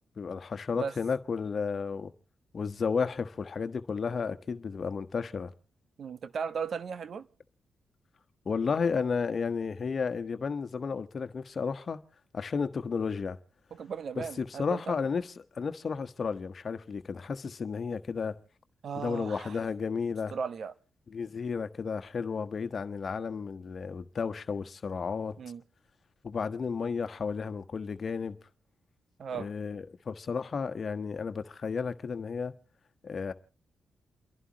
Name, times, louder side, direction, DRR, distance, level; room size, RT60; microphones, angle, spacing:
voice 1, 0.2-2.1 2.5-5.5 8.4-12.0 12.3-13.4 14.2-18.4 18.9-20.3 21.1-25.3 26.2-28.4 29.3-32.6 33.0-33.3, left 5 dB, 55° left, 1.3 m, -33 dB
voice 2, 6.0-7.3 13.7-15.0 18.8-19.6 20.3-20.7 25.4-25.6 29.2-29.5, right 6 dB, 65° right, 1.1 m, -36 dB
29.5 x 11.5 x 3.0 m
cardioid pair, 60°, 0 cm